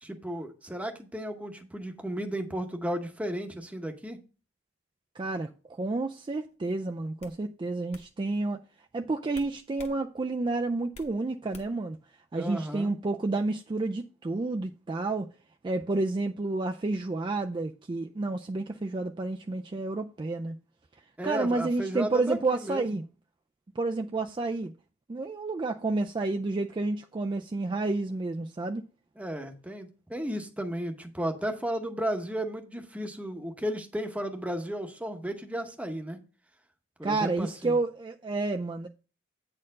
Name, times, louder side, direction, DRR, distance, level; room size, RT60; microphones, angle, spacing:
voice 1, 0.0-4.2 12.3-12.9 21.2-22.9 29.2-36.2 37.0-37.8, right 1 dB, 5° right, 0.8 m, -34 dB
voice 2, 5.2-8.6 8.9-12.0 12.3-15.3 15.6-20.6 21.2-23.0 23.8-24.7 25.1-28.8 37.0-38.9, right 3 dB, 25° right, 0.3 m, -30 dB
sound 1, 6.4-6.6 7.2-7.4 7.9-8.1 9.3-10.0 10.3-11.1 11.5-11.9, left 2 dB, 30° left, 1.1 m, -49 dB
8.7 x 4.4 x 5.2 m
head